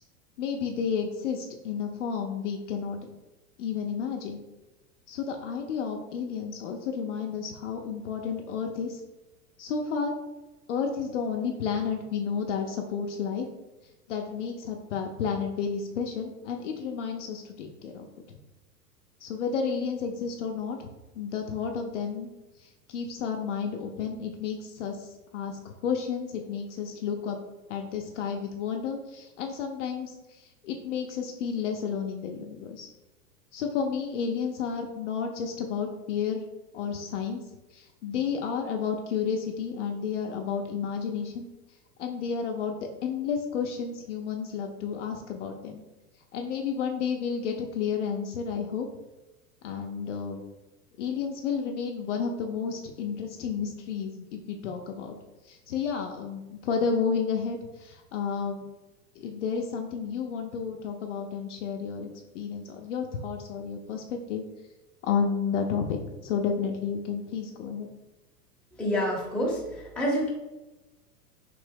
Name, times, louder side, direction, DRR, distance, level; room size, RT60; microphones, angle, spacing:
voice 1, 0.4-3.1 3.6-4.4 5.1-9.0 9.6-10.2 10.7-13.5 14.1-18.4 19.2-20.9 21.2-22.3 22.6-27.4 27.7-32.9 33.5-36.4 36.7-37.4 37.7-41.5 42.0-45.8 46.3-48.9 49.6-50.4 51.0-55.1 55.4-58.7 59.2-62.1 62.3-64.4 65.0-67.9, left 6 dB, 50° left, 3 dB, 0.5 m, -31 dB
voice 2, 68.8-70.3, equal, ahead, -5 dB, 0.7 m, -28 dB
3.2 x 2.6 x 3.4 m, 1.1 s
figure-of-eight pair, 100°, 47 cm